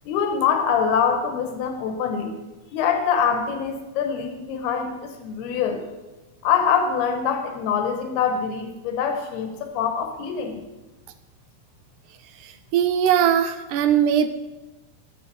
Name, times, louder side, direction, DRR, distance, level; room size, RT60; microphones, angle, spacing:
voice 1, 0.0-2.3 2.7-5.9 6.4-10.6, left 7 dB, 90° left, 5 dB, 3.3 m, -24 dB
voice 2, 12.4-14.3, right 9 dB, 90° right, 9 dB, 1.7 m, -20 dB
11.5 x 10.0 x 7.7 m, 1.1 s
omnidirectional pair, 4.5 m